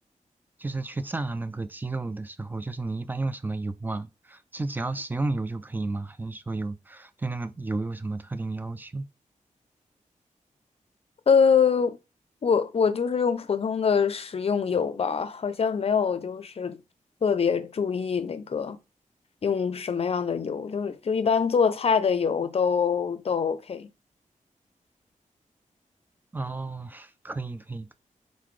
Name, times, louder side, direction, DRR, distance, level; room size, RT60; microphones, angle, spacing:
voice 1, 0.6-9.1 26.3-27.9, right 2 dB, 15° right, 0.4 m, -32 dB
voice 2, 11.3-12.0 12.4-16.8 17.2-18.8 19.4-23.9, left 6 dB, 50° left, 0.5 m, -24 dB
4.0 x 3.7 x 3.2 m
wide cardioid pair, 150°, 14 cm